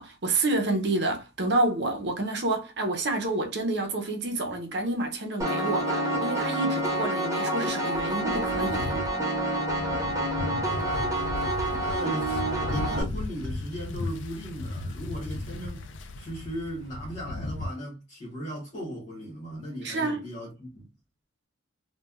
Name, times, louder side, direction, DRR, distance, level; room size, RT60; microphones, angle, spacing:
voice 1, 0.0-9.0 19.8-20.2, right 2 dB, 55° right, 0.7 m, -28 dB
Piano, 5.4-13.0, right 1 dB, 15° right, 0.8 m, -28 dB
sound 1, 7.9-17.7, left 2 dB, 70° left, 0.4 m, -36 dB
voice 2, 10.7-11.1 11.7-15.9 16.2-20.9, equal, 40° left, 1.4 m, -37 dB
3.3 x 2.3 x 2.3 m
head